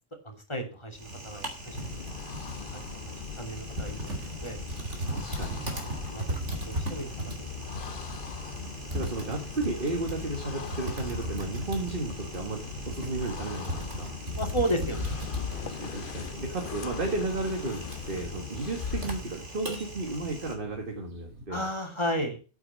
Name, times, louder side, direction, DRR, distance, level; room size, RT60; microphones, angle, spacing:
voice 1, 0.2-2.2 2.7-4.6 5.3-5.5 5.7-7.6 14.3-15.3 21.5-22.4, equal, 25° left, 3 dB, 2.8 m, -34 dB
Typing, 0.9-20.5, right 1 dB, 90° right, 3.3 m, -38 dB
sound 1, 1.6-19.4, left 7 dB, 55° left, 0.9 m, -40 dB
voice 2, 5.1-5.7 8.9-14.1 15.6-21.6, right 2 dB, 50° right, 2 dB, 2.0 m, -33 dB
sound 2, 6.6-21.5, right 1 dB, 70° right, 4.4 m, -48 dB
9.1 x 8.1 x 7.5 m, 0.35 s
omnidirectional pair, 1.2 m